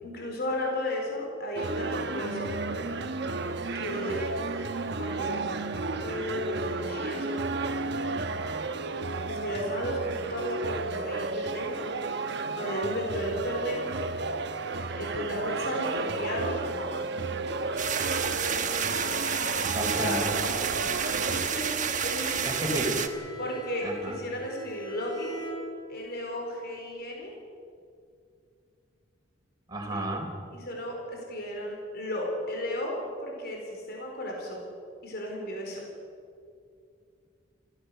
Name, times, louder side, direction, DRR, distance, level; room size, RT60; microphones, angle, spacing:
voice 1, 0.0-2.5 3.7-4.4 5.0-7.4 9.3-11.8 12.6-13.8 15.0-16.6 19.8-20.2 21.3-22.8 23.4-25.4 25.9-27.3 29.9-30.1 30.5-34.6 35.0-35.9, left 1 dB, 55° left, 0 dB, 4.3 m, -34 dB
sound 1, 1.5-21.5, right 3 dB, 65° right, 1.2 m, -32 dB
sound 2, 17.8-23.1, right 7 dB, 40° right, 1.3 m, -30 dB
voice 2, 19.7-20.3 22.4-23.0 23.8-24.2 29.7-30.3, right 1 dB, 20° right, 0 dB, 3.7 m, -32 dB
Bowed string instrument, 21.6-26.2, right 3 dB, 25° left, 4.4 m, -44 dB
26.5 x 15.0 x 6.8 m, 2.4 s
head